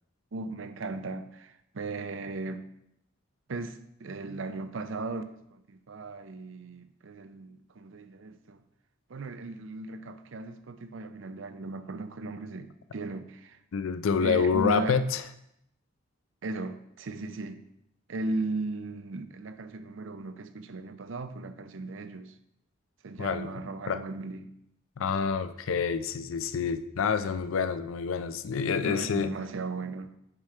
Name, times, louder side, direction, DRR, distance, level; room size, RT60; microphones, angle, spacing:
voice 1, 0.3-2.6 3.5-8.6 9.1-13.6 14.2-15.0 16.4-17.6 18.1-22.4 23.0-24.5 28.8-30.1, right 3 dB, 75° right, 0.6 m, -37 dB
voice 2, 13.7-15.2 23.2-23.5 23.9-24.0 25.0-29.3, left 6 dB, 90° left, 0.4 m, -27 dB
7.5 x 4.9 x 4.4 m
head